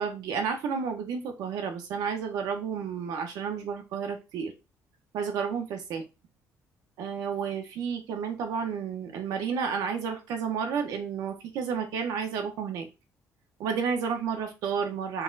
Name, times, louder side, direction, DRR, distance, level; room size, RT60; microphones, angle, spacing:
voice 1, 0.0-4.5 5.1-6.0 7.0-12.9 13.6-15.2, right 6 dB, 85° right, 4 dB, 1.1 m, -31 dB
4.5 x 2.4 x 3.9 m, 0.26 s
cardioid pair, 165°, 6 cm